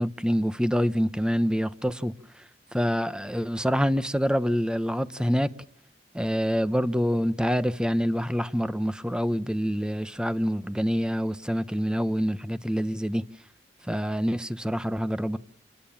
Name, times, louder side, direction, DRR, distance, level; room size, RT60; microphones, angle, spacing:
voice 1, 0.0-2.1 2.7-5.5 6.1-13.2 13.9-15.4, equal, 5° right, 1.1 m, -26 dB
28.5 x 20.5 x 7.3 m
head